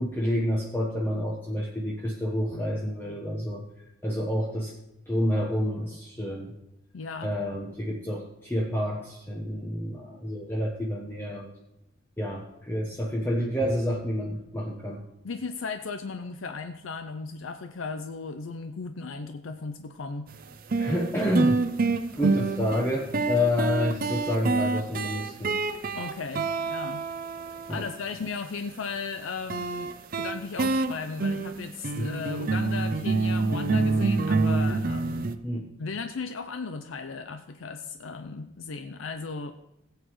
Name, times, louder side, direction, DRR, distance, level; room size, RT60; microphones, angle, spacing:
voice 1, 0.0-3.6 4.0-4.7 5.1-6.5 7.2-11.5 12.2-15.0 20.8-21.6 22.1-25.6 27.7-27.8 32.0-32.1 35.4-35.7, equal, 10° left, -3 dB, 1.0 m, -29 dB
voice 2, 6.9-7.3 15.2-20.3 26.0-27.1 27.7-35.3 35.8-39.5, left 4 dB, 80° left, 8 dB, 0.5 m, -36 dB
sound 1, 20.3-20.4 20.7-28.0 29.5-35.3, right 3 dB, 45° right, 0.6 m, -27 dB
16.5 x 8.2 x 3.1 m, 0.90 s
head